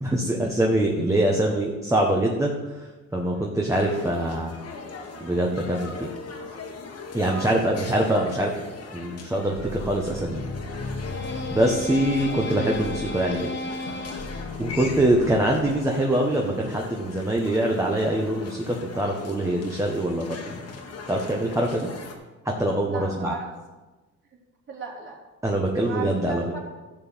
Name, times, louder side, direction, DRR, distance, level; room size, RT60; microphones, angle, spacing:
voice 1, 0.0-4.5 5.2-6.1 7.1-8.5 8.9-10.4 10.7-10.8 11.5-13.5 14.6-20.4 21.1-21.9 22.4-23.3 25.4-26.4, right 1 dB, 10° right, -1 dB, 1.4 m, -24 dB
sound 1, 3.7-22.1, left 4 dB, 55° left, 1.7 m, -40 dB
voice 2, 7.2-7.6 22.8-23.5 24.7-25.2 25.8-26.6, right 4 dB, 40° right, -5 dB, 3.6 m, -37 dB
sound 2, 9.6-15.8, left 2 dB, 35° left, 1.5 m, -34 dB
12.0 x 4.2 x 8.2 m, 1.2 s
cardioid pair, 90°, 30 cm